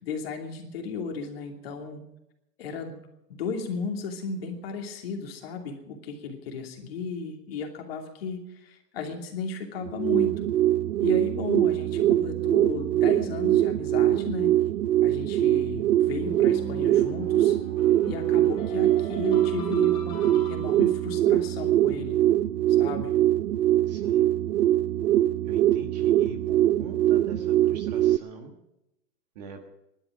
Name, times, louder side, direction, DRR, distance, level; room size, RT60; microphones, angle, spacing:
voice 1, 0.0-2.0 2.6-3.0 3.3-10.5 11.0-14.5 15.0-17.6 18.1-22.2 22.8-23.2, left 4 dB, 35° left, 3 dB, 2.8 m, -35 dB
sound 1, 9.8-28.2, right 13 dB, 80° right, 0.7 m, -23 dB
sound 2, 16.2-21.1, left 1 dB, 10° left, 4.0 m, -42 dB
voice 2, 23.9-24.3 25.4-28.6 29.3-29.6, right 4 dB, 25° right, 5 dB, 1.4 m, -42 dB
21.5 x 12.0 x 5.0 m, 0.88 s
hypercardioid pair, 165°, 49 cm